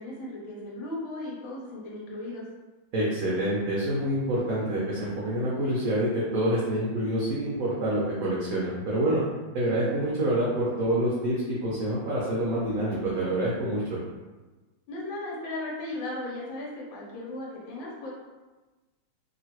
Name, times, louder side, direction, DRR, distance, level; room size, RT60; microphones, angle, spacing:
voice 1, 0.0-2.4 14.9-18.1, left 2 dB, 75° left, -4 dB, 1.6 m, -36 dB
voice 2, 2.9-9.2 9.5-14.0, right 1 dB, 70° right, -6 dB, 0.8 m, -27 dB
2.9 x 2.9 x 2.9 m, 1.2 s
omnidirectional pair, 2.2 m